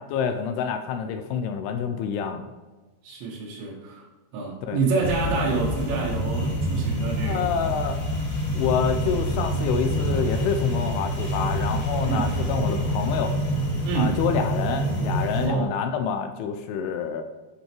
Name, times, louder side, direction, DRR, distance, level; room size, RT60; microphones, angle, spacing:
voice 1, 0.1-2.5 4.6-4.8 7.2-8.0 8.5-13.4 14.0-17.2, left 7 dB, 85° left, 7 dB, 2.3 m, -27 dB
voice 2, 3.0-4.0 4.3-7.7 12.0-12.3 13.8-14.1 15.4-15.7, right 4 dB, 85° right, -4 dB, 3.6 m, -27 dB
sound 1, 5.0-15.5, equal, 50° left, 3.5 m, -26 dB
11.5 x 5.5 x 3.0 m, 1.2 s
omnidirectional pair, 5.0 m